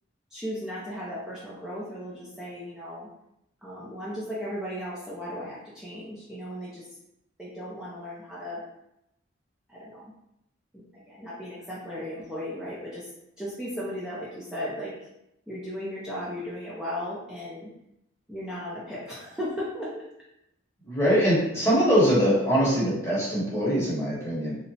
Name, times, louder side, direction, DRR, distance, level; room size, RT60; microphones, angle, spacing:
voice 1, 0.3-3.1 3.6-6.9 7.4-8.6 9.7-10.1 10.7-13.1 13.4-14.9 15.5-17.7 18.3-20.0, equal, 5° right, -9 dB, 0.4 m, -36 dB
voice 2, 20.8-24.6, equal, 15° left, -9 dB, 1.0 m, -23 dB
2.9 x 2.1 x 2.7 m, 0.83 s
head